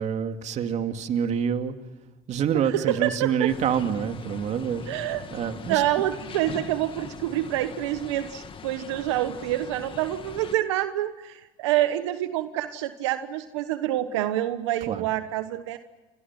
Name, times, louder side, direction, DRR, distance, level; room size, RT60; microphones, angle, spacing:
voice 1, 0.0-1.7 2.3-4.9 5.3-5.9 6.2-6.4 14.9-15.1, right 8 dB, 50° right, 7 dB, 2.4 m, -27 dB
voice 2, 2.5-3.5 4.9-5.2 5.7-15.8, right 13 dB, 85° right, 10 dB, 1.2 m, -27 dB
sound 1, 3.5-10.6, left 6 dB, 35° left, 2.1 m, -41 dB
29.0 x 25.5 x 6.0 m, 1.1 s
supercardioid pair, 85°, 15 cm